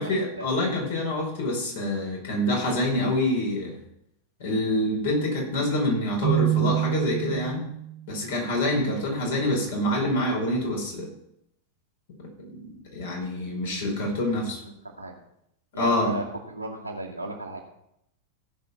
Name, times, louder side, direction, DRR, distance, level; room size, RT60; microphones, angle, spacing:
voice 1, 0.0-3.8 4.4-7.6 8.1-11.1 12.2-14.6 15.8-16.2, left 1 dB, 60° left, -1 dB, 5.0 m, -26 dB
Keyboard (musical), 6.2-8.1, right 15 dB, 35° right, 0.4 m, -26 dB
voice 2, 15.7-17.6, right 2 dB, 85° right, -1 dB, 2.3 m, -34 dB
16.0 x 5.8 x 5.9 m, 0.77 s
figure-of-eight pair, 90°, 0 cm